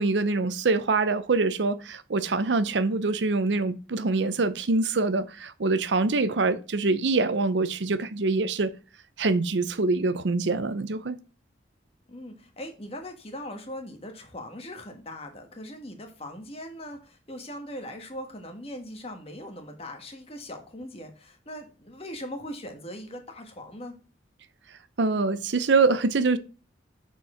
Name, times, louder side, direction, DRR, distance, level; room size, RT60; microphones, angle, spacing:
voice 1, 0.0-8.7 9.2-11.2 25.0-26.4, right 3 dB, 85° right, 0.6 m, -24 dB
voice 2, 12.1-23.9, left 1 dB, 35° left, 1.4 m, -40 dB
6.9 x 4.6 x 4.9 m
head